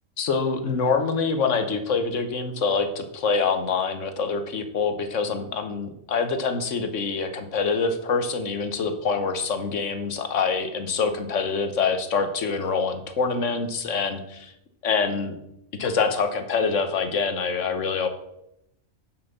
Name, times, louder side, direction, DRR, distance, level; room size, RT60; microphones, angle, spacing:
voice 1, 0.2-14.5 14.8-15.3 15.8-18.1, left 5 dB, 65° left, 8 dB, 1.4 m, -25 dB
7.4 x 6.3 x 6.7 m, 0.80 s
omnidirectional pair, 1.4 m